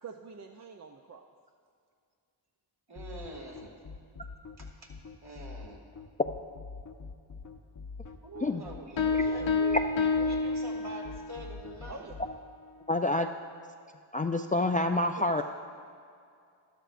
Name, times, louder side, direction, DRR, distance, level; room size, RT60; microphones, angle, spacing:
voice 1, 0.0-1.2 11.9-12.1 15.4-15.5, right 5 dB, 35° right, 3 dB, 0.6 m, -45 dB
voice 2, 2.9-3.7 4.6-5.0 5.2-5.8 8.2-12.1, right 2 dB, 55° right, -1 dB, 2.2 m, -44 dB
sound 1, 3.0-12.4, left 4 dB, 40° left, 0.8 m, -44 dB
sound 2, 9.0-11.4, left 4 dB, 75° left, 0.8 m, -28 dB
voice 3, 12.9-13.3 14.1-15.4, left 2 dB, 20° left, 5 dB, 0.3 m, -27 dB
12.5 x 12.5 x 2.5 m, 2.3 s
cardioid pair, 60°, 46 cm